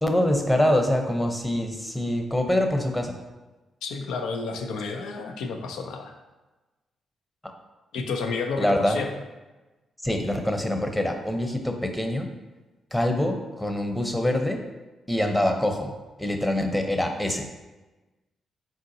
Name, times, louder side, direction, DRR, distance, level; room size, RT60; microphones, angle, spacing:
voice 1, 0.0-3.2 8.6-9.0 10.0-12.3 12.9-14.7 15.1-17.5, left 1 dB, 10° left, 4 dB, 0.7 m, -25 dB
voice 2, 3.8-6.2 7.9-9.1, left 4 dB, 80° left, 4 dB, 0.5 m, -31 dB
4.4 x 3.8 x 2.7 m, 1.1 s
supercardioid pair, 50°, 0 cm